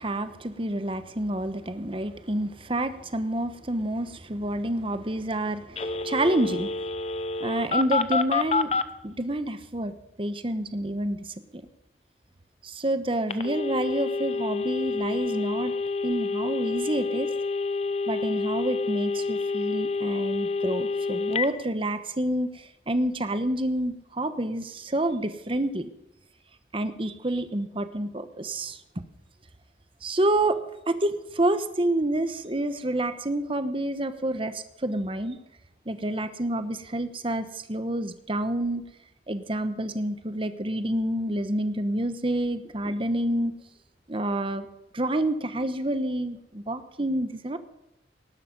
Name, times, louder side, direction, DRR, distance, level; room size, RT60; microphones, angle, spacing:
voice 1, 0.0-6.7 7.4-8.7 9.0-9.9 10.2-11.7 12.6-15.8 16.0-17.3 18.1-25.9 26.7-28.8 30.0-30.6 30.9-35.4 35.9-38.9 39.3-43.5 44.1-44.7 44.9-47.6, right 1 dB, 30° right, 10 dB, 1.1 m, -28 dB
Telephone, 5.8-8.9 13.3-21.5, left 4 dB, 35° left, 0.8 m, -28 dB
18.5 x 12.0 x 5.4 m, 0.88 s
head